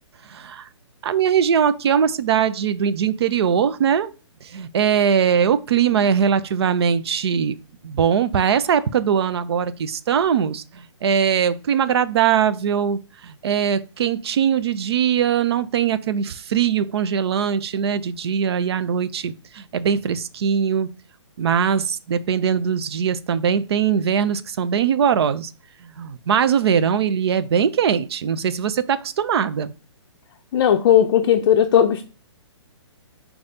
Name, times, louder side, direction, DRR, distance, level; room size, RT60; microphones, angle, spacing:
voice 1, 0.2-0.7 1.0-4.1 4.4-7.6 7.8-20.9 21.4-25.5 25.8-29.7, right 8 dB, 60° right, 0.5 m, -21 dB
voice 2, 30.5-32.0, left 9 dB, 50° left, 0.5 m, -16 dB
4.9 x 2.3 x 4.0 m
hypercardioid pair, 135°, 15 cm